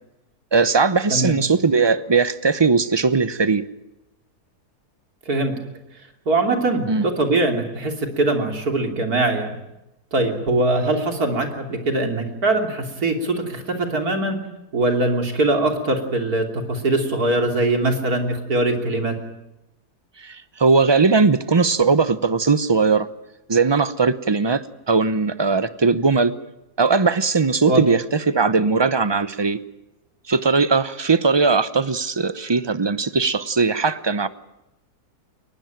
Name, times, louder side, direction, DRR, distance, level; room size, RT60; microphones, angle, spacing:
voice 1, 0.5-3.6 6.9-7.1 20.2-23.1 23.5-26.3 26.8-29.6 30.3-34.3, right 4 dB, 25° right, 14 dB, 0.6 m, -19 dB
voice 2, 6.3-9.5 10.1-14.4 14.7-19.1 27.7-27.8, right 2 dB, 70° right, 4 dB, 3.6 m, -22 dB
22.5 x 20.0 x 9.0 m, 0.91 s
omnidirectional pair, 1.7 m